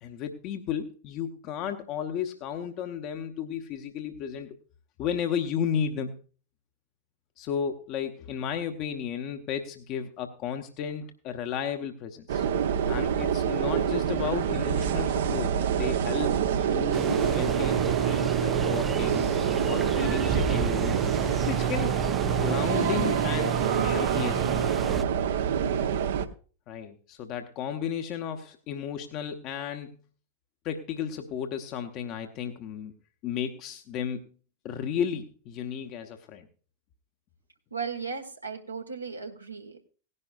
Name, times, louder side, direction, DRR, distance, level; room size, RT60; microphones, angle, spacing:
voice 1, 0.0-4.6 5.0-6.1 7.4-12.4 12.8-22.0 22.3-23.5 23.8-24.5 26.7-30.0 30.6-32.9 33.2-34.2 34.6-36.5, left 8 dB, 40° left, 5 dB, 1.0 m, -34 dB
sound 1, 12.3-26.3, right 8 dB, 60° right, 0.8 m, -26 dB
sound 2, 16.9-25.0, right 6 dB, 15° right, 0.5 m, -32 dB
voice 2, 37.7-39.8, right 5 dB, 85° right, 3 dB, 1.5 m, -36 dB
18.0 x 11.0 x 2.4 m, 0.38 s
figure-of-eight pair, 90°, 0 cm